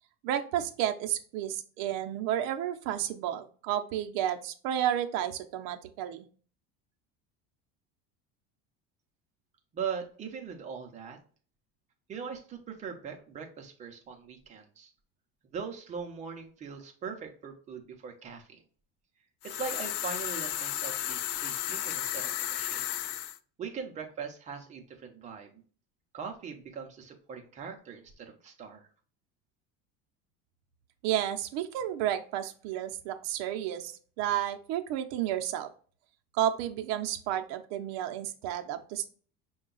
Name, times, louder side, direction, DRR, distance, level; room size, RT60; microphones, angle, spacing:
voice 1, 0.2-6.2 31.0-35.7 36.4-39.1, right 11 dB, 60° right, 6 dB, 0.6 m, -31 dB
voice 2, 9.7-11.2 12.1-14.9 15.5-18.6 19.4-22.9 23.6-25.6 26.1-28.9, right 6 dB, 25° right, 3 dB, 0.6 m, -40 dB
sound 1, 19.4-23.4, left 12 dB, 70° left, 0.5 m, -33 dB
5.5 x 2.3 x 3.8 m, 0.42 s
cardioid pair, 175°, 30 cm